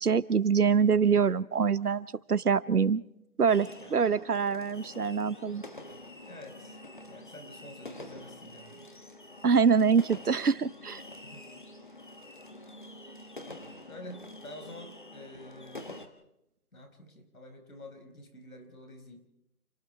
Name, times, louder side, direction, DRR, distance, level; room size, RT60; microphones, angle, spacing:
voice 1, 0.0-3.0 3.4-5.6 9.4-11.0, right 6 dB, 85° right, 19 dB, 1.0 m, -25 dB
sound 1, 3.5-16.1, left 2 dB, 35° left, 1.4 m, -47 dB
voice 2, 3.8-4.2 6.2-6.8 7.1-9.0 11.2-11.5 13.9-15.9 16.7-19.3, left 1 dB, 70° left, 5 dB, 5.3 m, -48 dB
29.5 x 19.0 x 4.7 m, 0.83 s
figure-of-eight pair, 175°, 44 cm